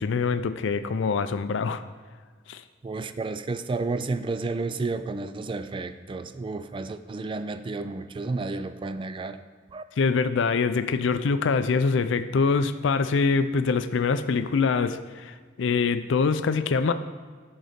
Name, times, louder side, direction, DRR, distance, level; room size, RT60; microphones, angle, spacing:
voice 1, 0.0-1.8 2.5-2.6 10.0-16.9, left 5 dB, 70° left, 11 dB, 0.4 m, -24 dB
voice 2, 2.8-9.4 9.7-9.8, right 3 dB, 25° right, 11 dB, 0.3 m, -31 dB
10.5 x 4.0 x 5.0 m, 1.5 s
head